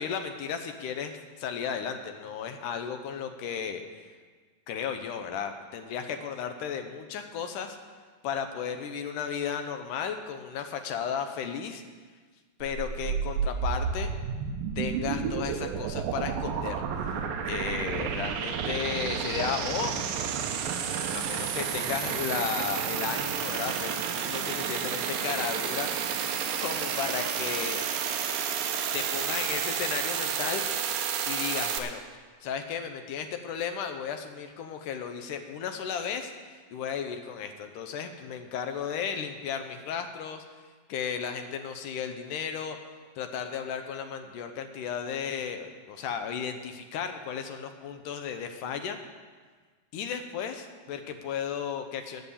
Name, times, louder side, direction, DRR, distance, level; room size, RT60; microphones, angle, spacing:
voice 1, 0.0-4.1 4.7-7.8 8.2-11.8 12.6-14.1 14.8-16.8 17.1-19.9 21.1-24.0 24.2-25.9 26.5-27.8 28.9-31.0 31.3-32.0 32.4-36.3 36.7-40.4 40.9-42.8 43.2-49.0 49.9-52.2, left 7 dB, 75° left, 7 dB, 2.2 m, -34 dB
sound 1, 12.6-31.8, right 7 dB, 80° right, 2.6 m, -31 dB
13.5 x 6.0 x 8.4 m, 1.5 s
omnidirectional pair, 4.1 m